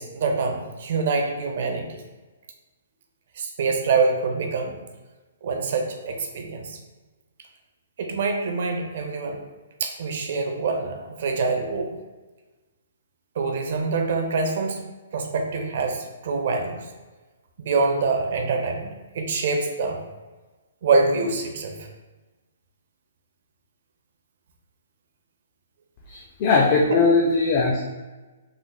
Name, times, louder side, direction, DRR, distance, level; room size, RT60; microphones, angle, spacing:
voice 1, 0.0-2.0 3.4-4.8 5.4-6.8 8.0-9.4 9.8-11.9 13.4-14.8 15.1-16.8 17.6-20.0 20.8-21.8 26.9-27.0, right 4 dB, 55° right, 3 dB, 0.5 m, -25 dB
voice 2, 26.1-27.8, left 4 dB, 35° left, 0 dB, 0.4 m, -20 dB
3.8 x 3.0 x 2.2 m, 1.2 s
hypercardioid pair, 155°, 0 cm